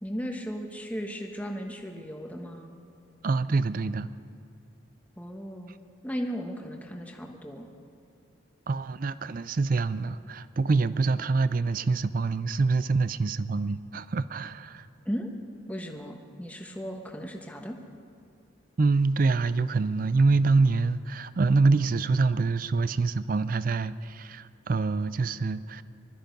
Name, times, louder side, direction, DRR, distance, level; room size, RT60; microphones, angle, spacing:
voice 1, 0.0-2.8 5.2-5.7 6.0-7.7 15.0-15.3 15.7-17.8, equal, 5° left, 2 dB, 1.1 m, -36 dB
voice 2, 3.2-4.1 8.7-14.9 18.8-25.8, right 3 dB, 45° right, 15 dB, 0.4 m, -25 dB
21.0 x 13.0 x 5.3 m, 2.5 s
head